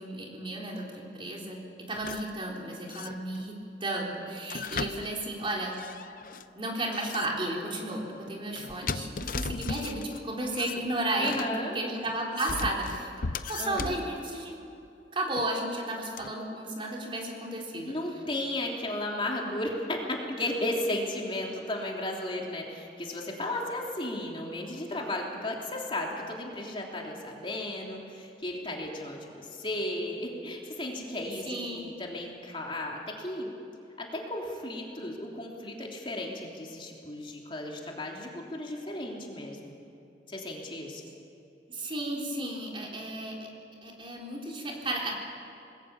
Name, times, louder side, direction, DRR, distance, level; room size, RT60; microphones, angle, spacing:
voice 1, 0.0-1.6 1.9-3.6 3.8-5.7 6.6-13.1 13.5-14.6 15.1-17.9 31.5-31.8 41.7-43.4 43.8-45.2, right 1 dB, 30° right, -1 dB, 3.9 m, -33 dB
sound 1, 1.9-2.4 2.9-3.5 4.4-6.4 6.9-7.5 8.5-10.2 10.5-11.5 12.1-14.1 15.4-15.5 16.2-16.3, left 4 dB, 50° left, 0.7 m, -37 dB
voice 2, 11.1-11.9 13.6-13.9 17.8-33.5 34.0-39.7 40.3-41.0, left 1 dB, 30° left, -1 dB, 3.1 m, -34 dB
26.5 x 20.5 x 7.1 m, 2.8 s
head